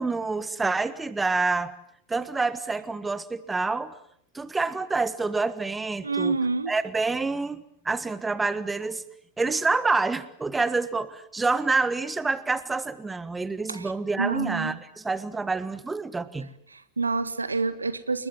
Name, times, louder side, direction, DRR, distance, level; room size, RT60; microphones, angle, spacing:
voice 1, 0.0-1.7 2.1-4.0 4.3-6.3 6.7-9.0 9.4-16.5, right 3 dB, 10° right, 16 dB, 1.6 m, -27 dB
voice 2, 6.0-6.7 13.7-13.9 14.2-14.8 16.7-18.3, right 4 dB, 80° right, 14 dB, 1.6 m, -27 dB
29.5 x 21.0 x 9.5 m, 0.68 s
figure-of-eight pair, 90°, 0 cm